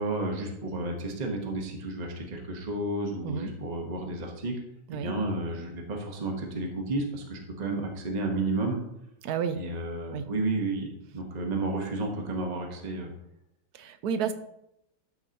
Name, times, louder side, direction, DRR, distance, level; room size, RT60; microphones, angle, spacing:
voice 1, 0.0-4.5 4.9-8.8 9.5-13.1, right 2 dB, 25° right, 2 dB, 1.2 m, -32 dB
voice 2, 9.2-9.6 10.1-10.2 13.7-14.3, right 7 dB, 70° right, 10 dB, 1.0 m, -31 dB
12.5 x 6.5 x 2.9 m, 0.80 s
omnidirectional pair, 2.0 m